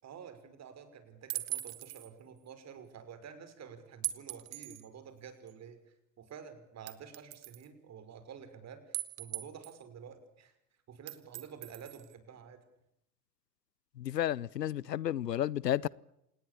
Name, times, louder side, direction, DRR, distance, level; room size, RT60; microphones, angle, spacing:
voice 1, 0.0-10.5 10.9-12.6, right 7 dB, 35° right, 5.8 m, -50 dB
sound 1, 1.3-2.1 4.0-4.9 5.5-5.6 6.9-7.6 8.9-9.8 11.1-12.1, right 19 dB, 50° right, 2.5 m, -39 dB
voice 2, 14.0-15.9, left 11 dB, 80° left, 0.9 m, -32 dB
27.5 x 20.0 x 8.7 m
hypercardioid pair, 90°, 48 cm